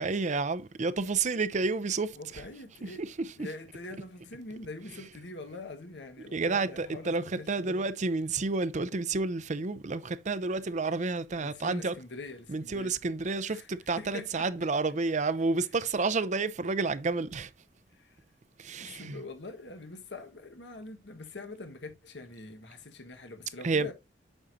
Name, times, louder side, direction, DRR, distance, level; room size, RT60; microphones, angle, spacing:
voice 1, 0.0-2.4 2.8-3.3 6.3-11.9 12.5-17.5 18.6-19.2 23.6-23.9, right 3 dB, 45° right, 0.6 m, -30 dB
voice 2, 2.2-3.0 3.4-7.9 11.4-13.0 13.4-13.7 14.0-14.5 18.0-18.2 18.8-23.9, left 2 dB, 80° left, 1.4 m, -44 dB
8.8 x 6.2 x 2.7 m
head